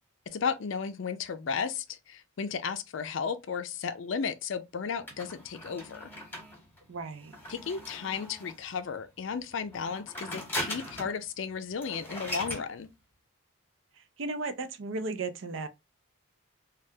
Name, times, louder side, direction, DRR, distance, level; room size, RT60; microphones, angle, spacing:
voice 1, 0.3-6.1 7.5-12.9, left 6 dB, 65° left, 0.4 m, -34 dB
sound 1, 5.1-8.7 9.7-11.2 11.5-11.6 11.8-12.7, left 1 dB, 10° left, 1.0 m, -39 dB
voice 2, 6.9-7.4 14.2-15.7, right 3 dB, 65° right, 0.5 m, -35 dB
3.3 x 2.3 x 2.7 m
head